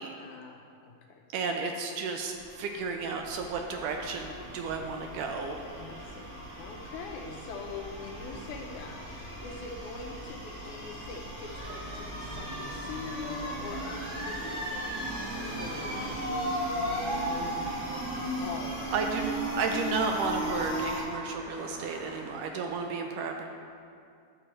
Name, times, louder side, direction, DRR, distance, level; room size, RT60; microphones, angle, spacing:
voice 1, 0.2-1.2 5.8-18.9, left 4 dB, 75° left, 2 dB, 1.9 m, -44 dB
voice 2, 1.3-5.6 5.9-6.1 18.9-23.5, right 4 dB, 80° right, 3 dB, 2.0 m, -33 dB
sound 1, 2.3-21.0, equal, 5° left, 1.3 m, -38 dB
sound 2, 11.4-20.8, right 1 dB, 40° right, 1.0 m, -37 dB
Car passing by, 15.2-22.9, right 1 dB, 65° right, 0.6 m, -50 dB
11.5 x 6.8 x 4.4 m, 2.4 s
omnidirectional pair, 4.1 m